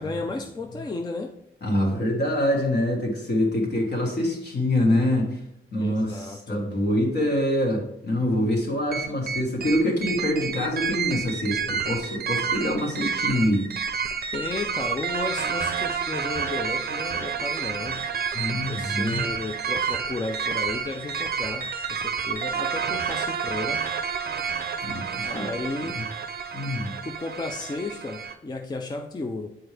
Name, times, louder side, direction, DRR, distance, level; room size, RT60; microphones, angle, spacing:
voice 1, 0.0-1.4 5.8-6.6 14.3-18.1 18.7-23.8 25.2-26.0 27.0-29.5, left 3 dB, 20° left, 4 dB, 0.4 m, -33 dB
voice 2, 1.6-5.4 5.7-13.7 18.3-19.2 24.8-25.5 25.8-26.0 26.5-26.9, left 1 dB, 55° left, 0 dB, 1.6 m, -25 dB
sound 1, 8.9-28.3, right 6 dB, 50° right, 0.5 m, -29 dB
8.0 x 4.4 x 3.3 m, 0.77 s
wide cardioid pair, 145°, 21 cm